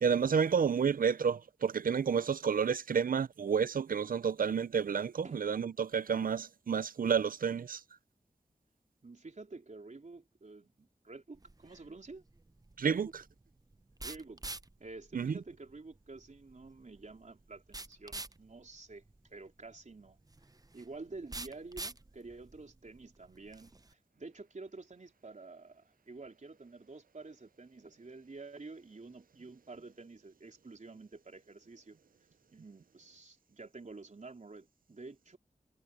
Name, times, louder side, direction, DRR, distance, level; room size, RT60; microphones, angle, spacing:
voice 1, 0.0-7.8 12.8-13.1 15.1-15.3, right 6 dB, 75° right, 0.5 m, -30 dB
voice 2, 9.0-12.2 12.8-13.0 14.0-14.4 14.8-19.0 19.3-20.2 20.7-32.0 32.5-35.4, right 3 dB, 55° right, 4.1 m, -49 dB
sound 1, 11.3-23.9, right 2 dB, 25° right, 0.7 m, -49 dB
wide cardioid pair, 50°, 15 cm